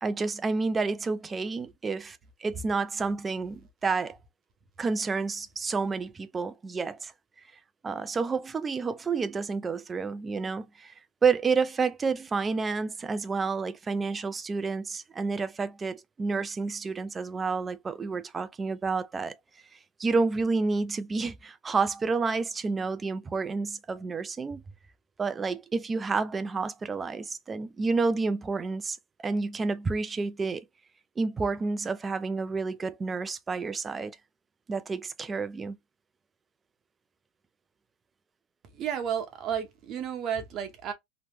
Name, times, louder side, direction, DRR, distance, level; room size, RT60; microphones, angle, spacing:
voice 1, 0.0-4.2 4.8-7.1 7.8-10.9 11.2-19.3 20.0-24.6 25.2-29.0 29.2-30.6 31.2-34.1 34.7-35.8, right 4 dB, 15° right, 0.3 m, -29 dB
voice 2, 38.7-40.9, right 8 dB, 35° right, 0.8 m, -32 dB
2.9 x 2.0 x 3.3 m
supercardioid pair, 145°, 0 cm